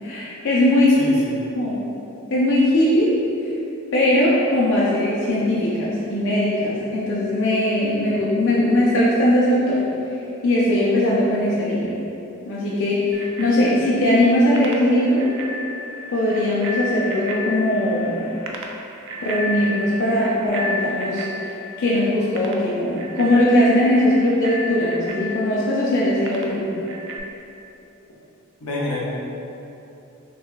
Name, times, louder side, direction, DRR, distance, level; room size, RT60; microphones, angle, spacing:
voice 1, 0.0-1.1 1.6-1.8 2.3-3.1 3.9-9.8 10.4-11.9 12.5-15.3 16.1-18.2 19.2-21.3 21.8-26.7, left 1 dB, 55° left, -7 dB, 0.5 m, -19 dB
voice 2, 1.0-1.4 28.6-29.0, left 2 dB, 85° left, -5 dB, 0.8 m, -28 dB
Bicycle bell, 13.1-27.2, left 1 dB, 55° right, 0.3 m, -33 dB
5.7 x 2.3 x 2.4 m, 2.9 s
head